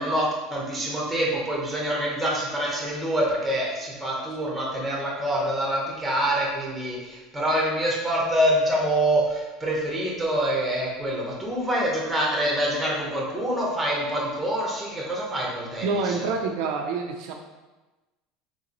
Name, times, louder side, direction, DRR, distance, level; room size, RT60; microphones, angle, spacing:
voice 1, 0.0-16.3, right 1 dB, ahead, -4 dB, 0.8 m, -26 dB
voice 2, 15.8-17.3, right 4 dB, 55° right, 2 dB, 0.4 m, -27 dB
3.6 x 3.0 x 3.8 m, 1.1 s
cardioid pair, 170°, 0 cm